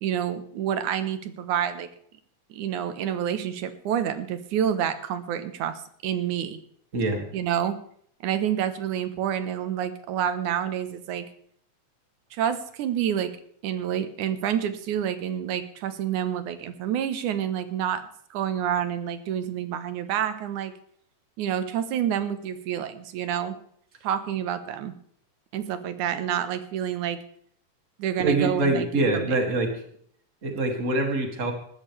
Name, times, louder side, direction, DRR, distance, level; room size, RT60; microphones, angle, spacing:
voice 1, 0.0-1.9 2.5-6.6 7.3-7.8 8.2-11.3 12.3-13.3 13.6-18.0 18.3-20.7 21.4-23.6 24.0-24.9 25.5-27.2 28.0-29.4, right 9 dB, 80° right, 11 dB, 2.6 m, -28 dB
voice 2, 6.9-7.2 28.2-29.7 30.4-31.5, right 2 dB, 25° right, 3 dB, 2.4 m, -24 dB
19.5 x 13.5 x 3.4 m, 0.64 s
omnidirectional pair, 3.5 m